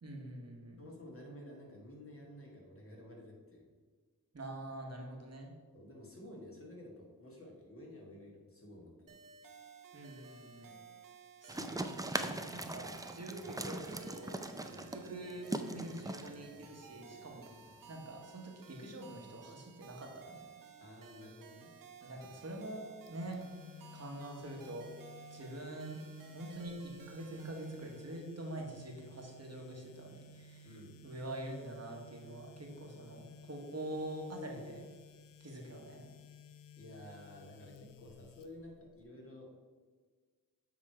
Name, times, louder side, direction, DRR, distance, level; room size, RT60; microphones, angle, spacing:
voice 1, 0.0-0.8 4.3-5.5 9.9-10.8 11.4-12.1 12.5-14.4 14.9-17.5 17.9-20.4 22.0-22.8 23.1-23.4 23.9-24.9 25.3-26.0 26.3-30.7 31.0-34.9 35.4-36.1, right 1 dB, 45° right, 1 dB, 1.3 m, -45 dB
voice 2, 0.8-3.6 5.7-9.2 14.6-14.9 15.7-15.8 20.8-21.7 30.6-30.9 36.8-39.5, left 1 dB, 35° left, -2 dB, 1.9 m, -52 dB
sound 1, 9.1-28.2, right 6 dB, 60° right, 0.7 m, -56 dB
sound 2, 11.5-17.9, right 2 dB, 10° right, 0.4 m, -41 dB
sound 3, 23.1-39.0, left 4 dB, 65° left, 0.5 m, -56 dB
7.8 x 3.1 x 4.9 m, 1.5 s
cardioid pair, 60°, 36 cm